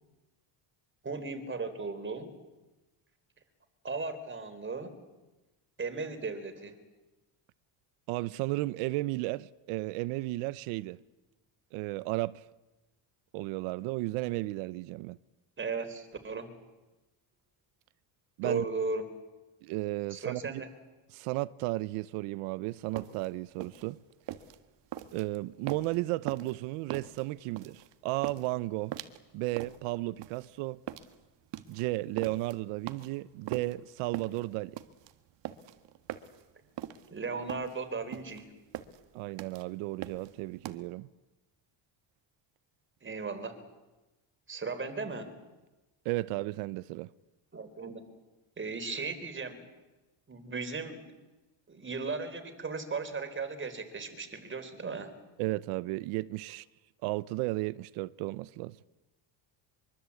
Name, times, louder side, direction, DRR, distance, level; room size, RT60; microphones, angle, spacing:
voice 1, 1.0-2.3 3.8-5.0 5.8-6.7 15.6-16.5 18.4-19.1 20.1-20.7 37.1-38.5 43.0-43.6 44.5-45.3 47.5-48.1 48.6-49.7 50.3-51.1 51.7-55.1, right 4 dB, 25° right, 3.9 m, -36 dB
voice 2, 8.1-11.0 11.7-12.4 13.3-15.2 18.4-18.6 19.6-20.6 21.1-24.0 25.1-29.0 29.3-30.8 31.7-34.8 39.1-41.1 46.0-47.1 55.4-56.7 57.0-58.8, right 19 dB, 90° right, 0.8 m, -34 dB
sound 1, 22.7-40.8, right 12 dB, 60° right, 1.8 m, -42 dB
24.5 x 24.0 x 8.4 m
cardioid pair, 130°, 49 cm